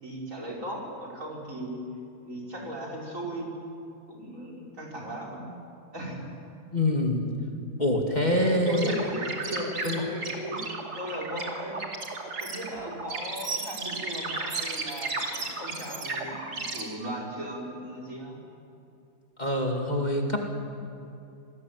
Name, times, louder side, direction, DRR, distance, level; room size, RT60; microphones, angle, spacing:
voice 1, 0.0-1.8 2.3-3.5 4.1-5.5 5.9-6.3 8.3-10.6 10.9-11.8 12.4-18.4, equal, 55° right, -2 dB, 5.4 m, -36 dB
voice 2, 6.7-7.2 7.8-8.9 9.8-10.0 19.4-20.5, left 1 dB, 25° left, 1 dB, 2.6 m, -25 dB
sound 1, 8.7-16.8, right 3 dB, 80° right, 3.3 m, -34 dB
27.5 x 19.5 x 9.4 m, 2.6 s
omnidirectional pair, 1.7 m